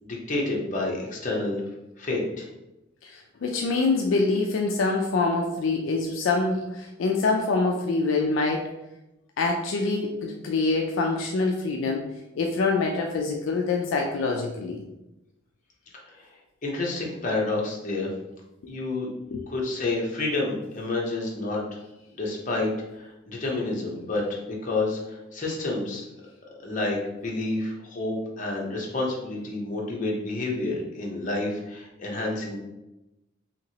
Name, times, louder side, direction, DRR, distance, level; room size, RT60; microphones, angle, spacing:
voice 1, 0.0-1.6 2.0-2.5 16.0-18.1 18.7-19.1 19.5-21.8 22.2-26.0 26.6-32.6, left 2 dB, 40° left, -2 dB, 0.7 m, -29 dB
voice 2, 3.0-8.7 9.4-12.1 12.4-14.8 19.3-19.4, left 3 dB, 70° left, 1 dB, 0.3 m, -25 dB
2.9 x 2.8 x 2.8 m, 0.95 s
head